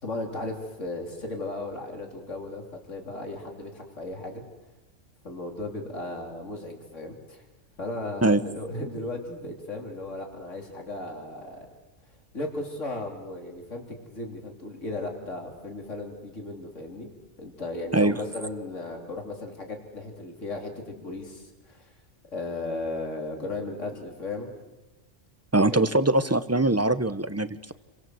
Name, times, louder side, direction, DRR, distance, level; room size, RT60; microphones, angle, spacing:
voice 1, 0.0-4.4 5.2-7.4 7.8-11.7 12.3-17.1 17.4-21.9 22.3-24.5 25.7-25.9, left 2 dB, 75° left, 2 dB, 3.9 m, -36 dB
voice 2, 25.5-27.7, right 2 dB, 15° right, 13 dB, 0.9 m, -22 dB
29.5 x 24.0 x 7.9 m, 1.1 s
omnidirectional pair, 1.3 m